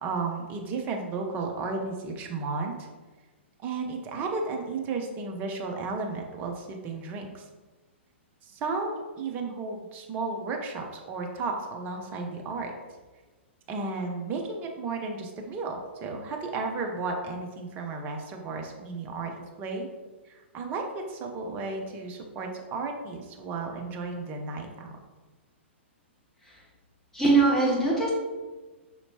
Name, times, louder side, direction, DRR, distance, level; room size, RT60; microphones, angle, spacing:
voice 1, 0.0-2.9 3.6-7.5 8.4-12.7 13.7-19.3 19.6-19.9 20.3-25.0, right 3 dB, 25° right, 2 dB, 0.6 m, -33 dB
voice 2, 27.1-28.1, right 3 dB, 5° left, -7 dB, 1.3 m, -22 dB
5.3 x 2.9 x 2.8 m, 1.3 s
figure-of-eight pair, 110°, 7 cm